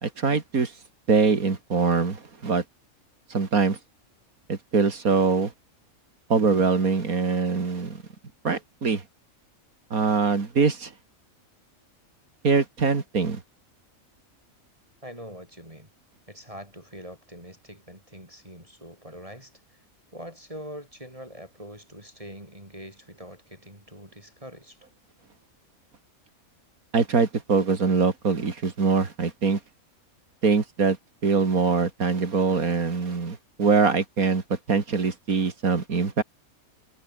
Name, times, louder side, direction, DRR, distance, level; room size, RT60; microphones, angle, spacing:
voice 1, 0.0-0.7 1.1-2.6 3.3-3.8 4.5-5.5 6.3-8.0 8.4-9.0 9.9-10.9 12.4-13.4 26.9-29.6 30.4-31.0 31.2-34.4 34.7-36.2, right 4 dB, 80° right, 3.0 m, -23 dB
voice 2, 15.0-15.9 16.3-19.8 20.1-24.9, equal, 25° right, 7.8 m, -43 dB
omnidirectional pair, 1.5 m